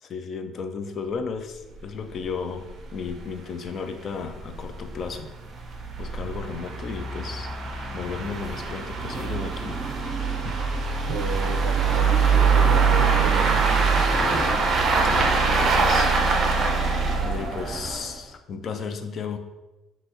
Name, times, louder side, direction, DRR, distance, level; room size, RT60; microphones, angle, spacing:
voice 1, 0.0-2.7 2.9-5.3 6.0-7.5 7.9-9.8 10.3-10.6 15.0-16.6 17.2-19.4, left 5 dB, 40° left, 7 dB, 0.4 m, -34 dB
sound 1, 1.8-1.9 2.1-2.2 2.7-2.8 3.1-3.2 3.8-18.2, right 4 dB, 35° right, 0.7 m, -23 dB
voice 2, 11.1-14.6, right 6 dB, 85° right, 4 dB, 0.4 m, -32 dB
5.5 x 3.0 x 2.9 m, 1.1 s
cardioid pair, 140°, 0 cm